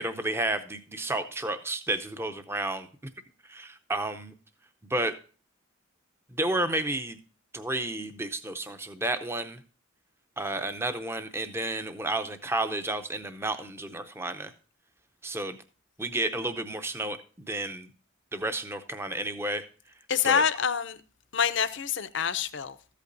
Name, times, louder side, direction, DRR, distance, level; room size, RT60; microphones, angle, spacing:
voice 1, 0.0-2.9 3.5-4.3 4.9-5.1 6.3-7.2 7.5-9.6 10.4-14.5 15.2-15.6 16.0-17.9 18.3-19.6 20.2-20.4, right 1 dB, 10° right, 0.6 m, -31 dB
voice 2, 20.1-21.0 21.3-22.8, left 7 dB, 55° left, 0.6 m, -26 dB
14.0 x 8.4 x 2.6 m
head